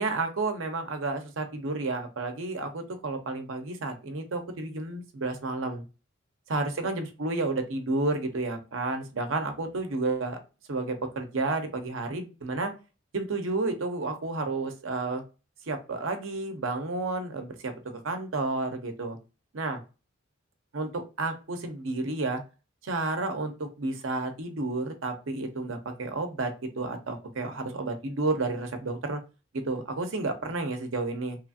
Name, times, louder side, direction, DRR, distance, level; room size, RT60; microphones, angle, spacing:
voice 1, 0.0-5.8 6.5-10.4 10.7-12.7 13.1-15.2 15.7-17.7 18.0-19.2 19.5-19.8 20.7-22.4 22.8-29.2 29.7-31.4, right 3 dB, 80° right, 6 dB, 0.7 m, -31 dB
3.0 x 2.4 x 2.5 m, 0.31 s
head